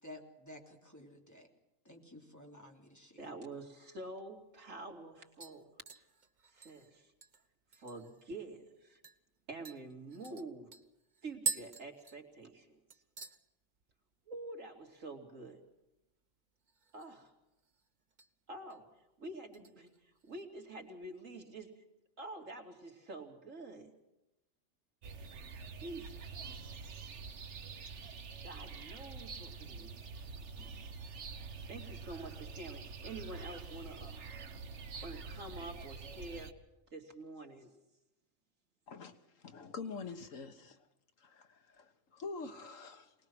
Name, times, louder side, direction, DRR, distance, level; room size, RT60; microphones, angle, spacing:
voice 1, 0.0-1.5 1.8-3.2, left 1 dB, 15° left, 1 dB, 3.3 m, -53 dB
voice 2, 3.2-5.7 6.5-7.1 7.7-9.0 9.5-10.7 11.2-12.8 14.3-15.6 16.9-17.3 18.5-18.8 19.2-21.8 22.2-23.9 25.7-26.4 28.4-31.0 31.7-34.3 35.0-36.5 36.9-37.7, right 2 dB, 85° right, 2 dB, 3.1 m, -47 dB
sound 1, 4.3-4.4 4.8-5.1 5.4-8.2 8.6-8.7 9.0-9.2 9.6-12.6 12.9-13.4 13.7-14.1 14.4-14.5 16.6-17.2 17.6-18.3 18.7-19.0 19.5-20.4 20.8-20.9, right 4 dB, 40° right, 1.1 m, -44 dB
sound 2, 25.0-36.5, right 4 dB, 65° right, 1.4 m, -46 dB
voice 3, 38.9-40.8 41.2-43.1, left 4 dB, 85° left, 8 dB, 1.8 m, -46 dB
24.0 x 19.5 x 6.2 m, 0.92 s
omnidirectional pair, 1.3 m